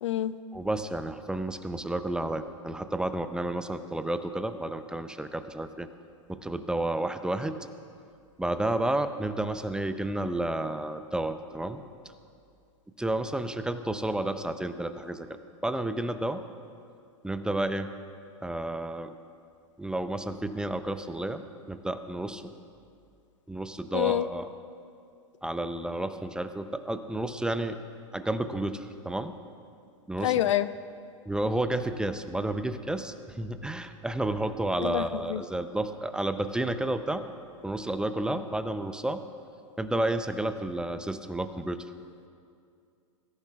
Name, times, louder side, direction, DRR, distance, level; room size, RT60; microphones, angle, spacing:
voice 1, 0.0-0.3 23.9-24.3 30.2-30.7 34.8-35.4, left 12 dB, 65° left, 15 dB, 0.5 m, -27 dB
voice 2, 0.5-5.9 6.3-7.6 8.4-11.8 13.0-16.4 17.2-17.9 18.4-19.1 19.8-22.4 23.5-24.5 25.4-27.8 28.1-29.3 30.1-30.3 31.3-37.3 37.6-39.2 39.8-41.9, right 1 dB, 5° right, 10 dB, 0.6 m, -31 dB
23.0 x 14.0 x 2.4 m, 2.4 s
hypercardioid pair, 100°, 17 cm